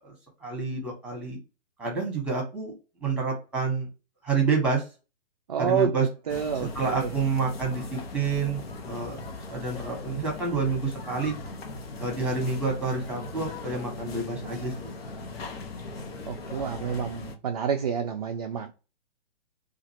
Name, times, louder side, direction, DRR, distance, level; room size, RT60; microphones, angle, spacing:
voice 1, 0.4-1.4 1.8-2.7 3.0-3.9 4.2-4.8 5.6-6.1 6.7-8.6 8.9-9.2 9.5-11.3 12.0-14.9, right 4 dB, 5° right, 1.1 m, -28 dB
voice 2, 5.5-7.1 16.3-18.7, right 7 dB, 35° right, 0.4 m, -29 dB
sound 1, 6.3-17.4, left 3 dB, 55° left, 0.9 m, -39 dB
2.7 x 2.4 x 2.8 m
figure-of-eight pair, 125°, 35 cm